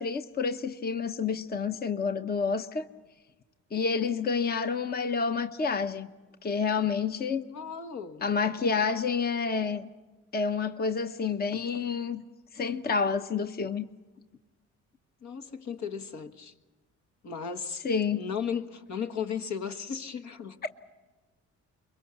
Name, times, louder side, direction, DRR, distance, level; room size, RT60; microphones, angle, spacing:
voice 1, 0.0-2.8 3.7-6.1 6.4-7.4 8.2-9.9 10.3-12.2 12.5-13.9 17.8-18.2 20.6-20.7, left 5 dB, 30° left, 0.9 m, -29 dB
voice 2, 7.5-8.2 15.2-16.5 17.2-20.6, left 7 dB, 65° left, 1.7 m, -36 dB
24.5 x 22.5 x 7.1 m
cardioid pair, 90°, 30 cm